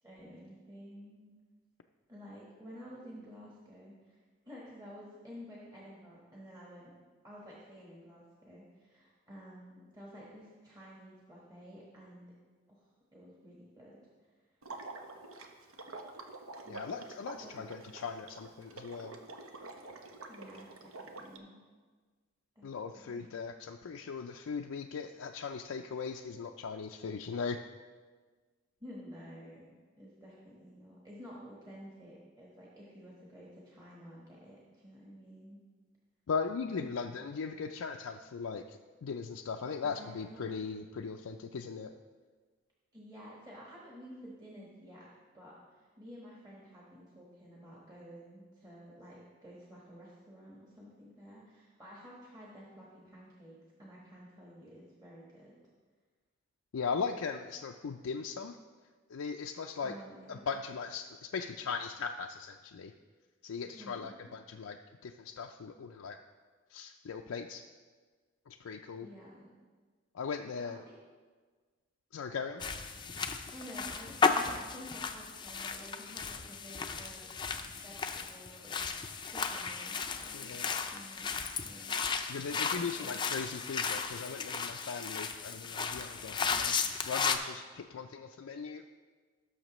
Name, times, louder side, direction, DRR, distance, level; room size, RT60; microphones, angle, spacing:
voice 1, 0.0-1.4 2.1-6.9 7.2-12.3 12.8-14.3 16.6-16.9 17.4-17.7 20.3-21.6 22.5-22.7 22.9-23.3 28.8-35.6 39.8-40.6 42.9-55.5 59.8-60.6 63.7-64.2 69.0-69.5 70.5-71.0 73.5-77.3 77.8-78.7 79.3-81.3 81.6-82.0 82.6-83.2, equal, 20° right, -5 dB, 1.4 m, -51 dB
Water / Liquid, 14.6-21.4, right 3 dB, 90° right, 0.9 m, -47 dB
voice 2, 16.7-19.2 22.6-27.6 36.3-41.9 56.7-58.6 59.1-59.9 60.3-62.9 63.4-64.8 65.0-66.2 66.7-67.6 68.5-69.1 70.1-70.8 72.1-72.6 80.3-80.7 82.3-86.8 87.1-88.8, left 5 dB, 90° left, 3 dB, 0.4 m, -39 dB
sound 1, 72.6-87.4, left 5 dB, 20° left, 0.4 m, -35 dB
17.5 x 6.5 x 3.1 m, 1.5 s
head